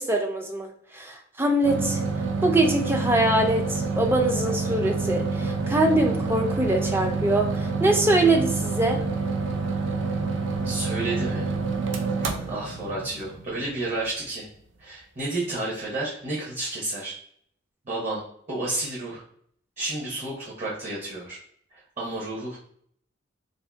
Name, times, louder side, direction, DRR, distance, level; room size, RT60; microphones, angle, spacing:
voice 1, 0.0-2.0 2.4-9.0, right 1 dB, 10° right, 3 dB, 0.4 m, -23 dB
sound 1, 1.6-14.2, right 4 dB, 75° right, 0.5 m, -28 dB
voice 2, 10.6-11.5 12.2-14.5 14.8-17.2 17.9-19.2 19.8-21.4 21.7-22.6, right 2 dB, 40° right, -6 dB, 0.8 m, -31 dB
2.6 x 2.5 x 3.4 m, 0.63 s
head